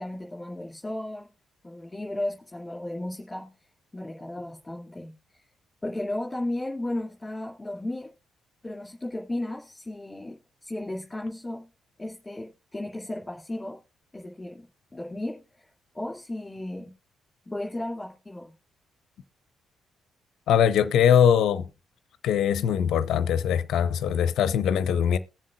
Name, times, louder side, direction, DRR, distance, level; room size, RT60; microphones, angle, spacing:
voice 1, 0.0-1.3 1.6-3.7 3.9-5.5 5.8-8.1 8.6-11.7 12.0-13.8 14.1-14.7 14.9-16.9 17.5-18.5, left 1 dB, 15° left, 2.2 m, -35 dB
voice 2, 20.5-21.7 22.2-25.2, left 8 dB, 60° left, 0.6 m, -22 dB
21.5 x 7.4 x 2.4 m
figure-of-eight pair, 40°, 0 cm